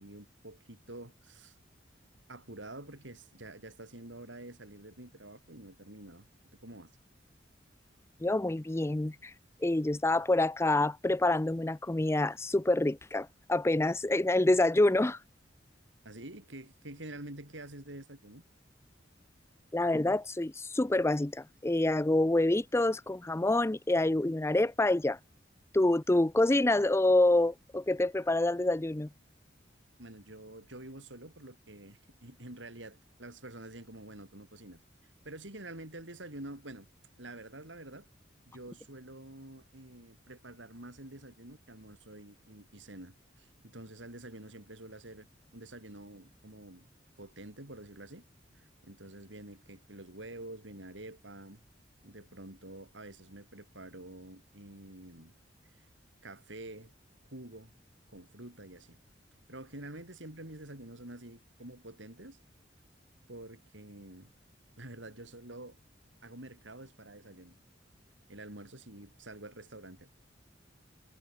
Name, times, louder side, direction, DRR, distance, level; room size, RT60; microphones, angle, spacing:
voice 1, 0.0-1.6 2.3-6.3 6.6-6.9 16.0-18.4 30.0-34.8 35.2-36.9 37.2-38.1 38.5-45.3 45.5-46.9 47.2-48.2 48.5-51.6 52.0-55.3 56.2-56.9 57.3-57.7 58.1-59.0 59.5-62.4 63.3-64.3 64.8-65.8 66.2-67.6 68.3-70.1, right 1 dB, 80° right, 6.0 m, -48 dB
voice 2, 8.2-9.3 9.6-15.2 19.7-25.2 25.7-29.1, left 2 dB, 15° left, 0.5 m, -27 dB
head